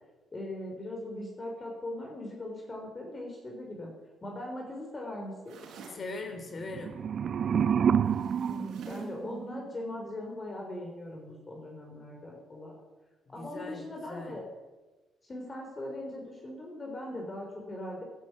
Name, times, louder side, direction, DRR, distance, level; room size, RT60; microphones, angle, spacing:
voice 1, 0.3-3.9 4.2-5.6 8.5-12.8 13.3-14.4 15.3-18.0, left 1 dB, 30° left, 0 dB, 4.1 m, -40 dB
sound 1, 5.4-6.1 8.0-9.2, right 4 dB, 75° right, 5.0 m, -50 dB
voice 2, 5.9-6.9 13.3-14.4, left 3 dB, 45° left, 6 dB, 3.2 m, -40 dB
sound 2, 6.6-9.7, right 7 dB, 55° right, 0.5 m, -29 dB
12.5 x 12.0 x 8.3 m, 1.2 s
cardioid pair, 90°, 0 cm